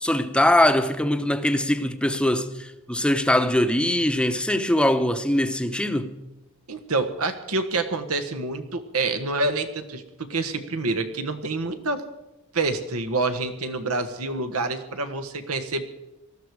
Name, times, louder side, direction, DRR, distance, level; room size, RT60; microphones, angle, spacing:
voice 1, 0.0-6.2, left 1 dB, 5° left, 0.8 m, -22 dB
voice 2, 6.7-12.0 12.5-15.8, right 3 dB, 85° right, 1.5 m, -27 dB
19.0 x 13.5 x 4.8 m
head